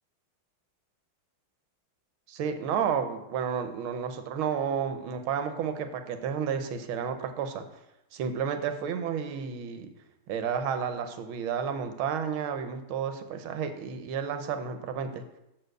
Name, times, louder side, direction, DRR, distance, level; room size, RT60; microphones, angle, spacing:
voice 1, 2.3-7.6 8.1-9.9 10.3-15.2, right 7 dB, 80° right, 8 dB, 1.6 m, -31 dB
6.5 x 4.4 x 6.5 m, 0.88 s
omnidirectional pair, 2.3 m